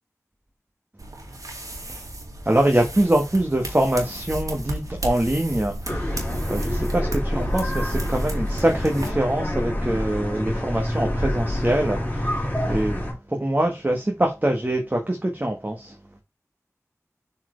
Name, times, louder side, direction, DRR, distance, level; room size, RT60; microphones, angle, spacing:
sound 1, 1.0-9.1, right 1 dB, 85° right, 2.4 m, -34 dB
voice 1, 2.4-15.9, right 1 dB, 30° right, 1.4 m, -24 dB
sound 2, 5.9-13.1, equal, 25° left, 2.7 m, -27 dB
7.6 x 4.6 x 3.3 m
wide cardioid pair, 65°, 6 cm